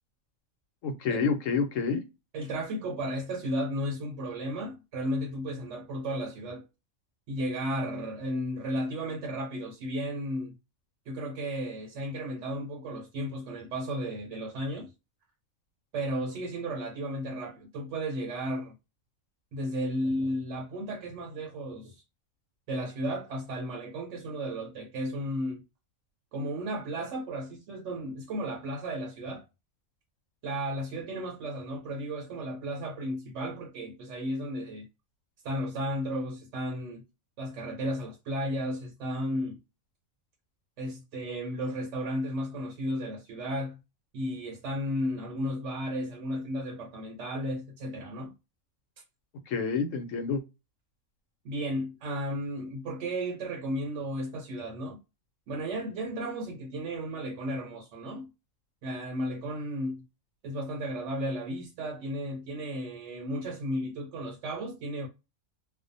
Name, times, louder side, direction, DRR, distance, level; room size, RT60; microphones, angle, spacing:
voice 1, 0.8-2.0 49.5-50.4, left 5 dB, 70° left, 1.0 m, -28 dB
voice 2, 2.3-6.7 7.3-10.5 11.1-14.9 15.9-18.7 19.5-22.0 22.7-25.6 26.3-29.4 30.4-34.9 35.4-37.1 37.4-39.6 40.8-43.8 44.1-48.3 51.4-55.0 55.5-58.3 58.8-60.0 60.4-65.1, equal, 65° right, 0.8 m, -34 dB
2.5 x 2.1 x 2.5 m
omnidirectional pair, 1.4 m